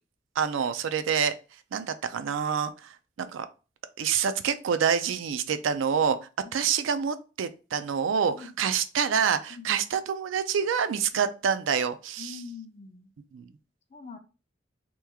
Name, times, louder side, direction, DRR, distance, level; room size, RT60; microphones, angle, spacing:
voice 1, 0.4-1.3 1.7-3.5 4.0-6.2 6.5-12.3 13.3-13.5, right 7 dB, 85° right, 11 dB, 0.4 m, -27 dB
voice 2, 8.3-8.7 9.5-9.9 11.1-11.2 12.2-13.1 13.9-14.2, left 5 dB, 35° left, 8 dB, 0.4 m, -44 dB
3.0 x 2.3 x 3.4 m, 0.33 s
head